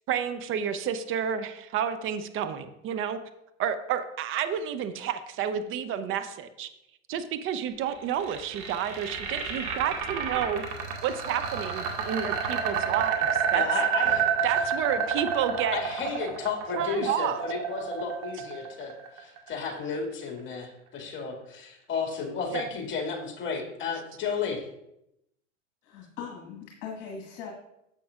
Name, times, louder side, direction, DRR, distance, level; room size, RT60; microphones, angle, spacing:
voice 1, 0.1-3.2 3.6-6.7 7.1-10.6 11.0-13.6 14.4-15.8 16.8-17.4 22.5-22.6, right 9 dB, 35° right, 11 dB, 0.6 m, -30 dB
sound 1, 7.9-19.9, right 7 dB, 50° right, 1.8 m, -29 dB
voice 2, 13.5-14.2 15.7-24.7, left 5 dB, 30° left, 1 dB, 2.2 m, -33 dB
voice 3, 25.8-27.5, left 6 dB, 50° left, -2 dB, 1.9 m, -40 dB
10.0 x 7.5 x 2.4 m, 0.83 s
hypercardioid pair, 100°, 38 cm